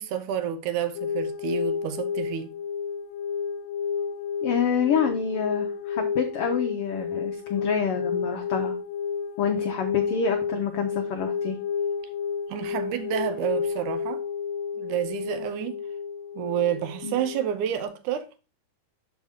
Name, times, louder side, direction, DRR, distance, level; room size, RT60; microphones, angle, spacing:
voice 1, 0.0-2.5 12.5-14.2 14.7-15.8 16.4-18.3, right 10 dB, 75° right, 2.2 m, -29 dB
sound 1, 0.9-17.9, left 6 dB, 60° left, 1.5 m, -31 dB
voice 2, 4.4-8.8 9.4-11.6 17.0-17.1, left 6 dB, 85° left, 1.3 m, -27 dB
6.5 x 6.0 x 3.4 m
omnidirectional pair, 3.6 m